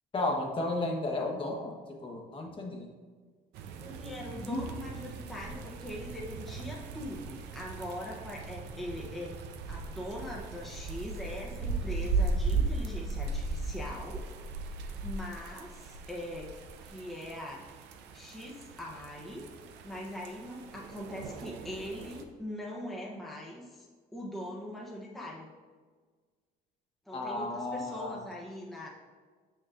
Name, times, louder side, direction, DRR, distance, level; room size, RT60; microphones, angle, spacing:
voice 1, 0.1-1.7 2.0-2.9 4.5-4.6 27.1-28.2, left 2 dB, 30° left, 0 dB, 1.1 m, -33 dB
sound 1, 3.5-22.2, right 3 dB, 85° right, 0.6 m, -37 dB
voice 2, 3.8-9.4 9.7-14.2 14.8-16.5 16.8-17.7 18.1-19.4 19.8-23.9 24.1-25.5 27.1-28.9, left 1 dB, ahead, -4 dB, 0.9 m, -41 dB
6.5 x 6.5 x 2.5 m, 1.5 s
cardioid pair, 110°, 17 cm